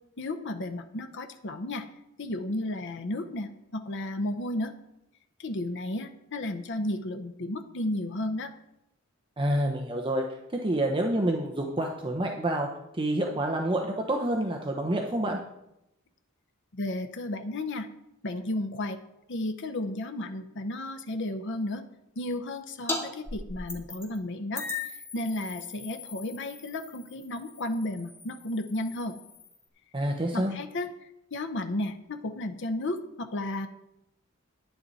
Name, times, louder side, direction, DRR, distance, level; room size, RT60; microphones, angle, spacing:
voice 1, 0.2-1.8 2.2-4.7 5.4-8.5 16.7-17.9 18.2-19.0 19.3-21.8 22.2-24.6 25.1-29.1 30.3-30.9 31.3-33.7, left 1 dB, 60° left, 7 dB, 0.8 m, -33 dB
voice 2, 9.4-10.2 10.6-12.7 13.0-15.4 29.9-30.5, right 1 dB, 25° right, 1 dB, 0.9 m, -28 dB
sound 1, 22.9-23.0 23.3-24.2 24.5-29.6, left 3 dB, 10° left, 2.0 m, -39 dB
10.5 x 10.5 x 4.1 m, 0.86 s
head